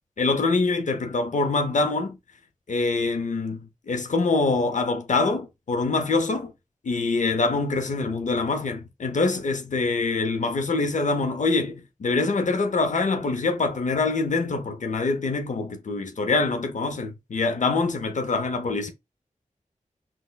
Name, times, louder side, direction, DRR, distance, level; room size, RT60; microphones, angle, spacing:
voice 1, 0.2-2.2 2.7-6.5 6.8-18.9, left 3 dB, 65° left, 0.6 m, -25 dB
4.0 x 2.1 x 2.2 m
wide cardioid pair, 60°, 14 cm